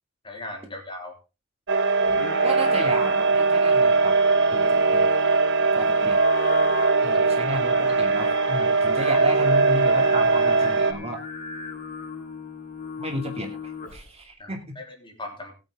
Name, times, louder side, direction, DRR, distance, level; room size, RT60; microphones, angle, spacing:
voice 1, 0.2-1.2 7.1-7.2 9.0-9.1 14.4-15.6, left 2 dB, 25° left, 2 dB, 3.3 m, -38 dB
sound 1, 1.7-10.9, right 4 dB, 55° right, 1.4 m, -20 dB
Singing, 2.0-14.2, left 4 dB, 40° left, 4.7 m, -37 dB
voice 2, 2.4-5.1 5.7-6.2 7.0-11.2 13.0-14.8, equal, 30° right, 2 dB, 2.6 m, -33 dB
19.0 x 8.1 x 3.7 m, 0.29 s
head